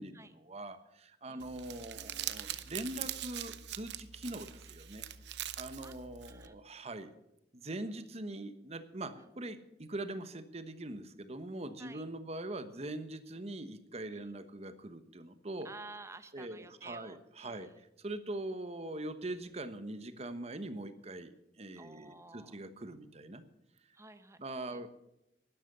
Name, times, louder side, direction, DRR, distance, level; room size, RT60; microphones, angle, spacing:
voice 1, 0.0-5.0 5.6-7.1 7.5-15.7 16.3-17.7 18.0-23.4 24.4-24.9, right 1 dB, 35° right, 11 dB, 1.1 m, -42 dB
Crumpling crinkling, 1.4-6.5, right 11 dB, 80° right, 0.8 m, -42 dB
voice 2, 15.6-17.8 21.7-22.6 23.9-24.4 24.7-24.8, right 3 dB, 15° right, 10 dB, 0.8 m, -52 dB
12.0 x 11.5 x 6.8 m, 0.85 s
head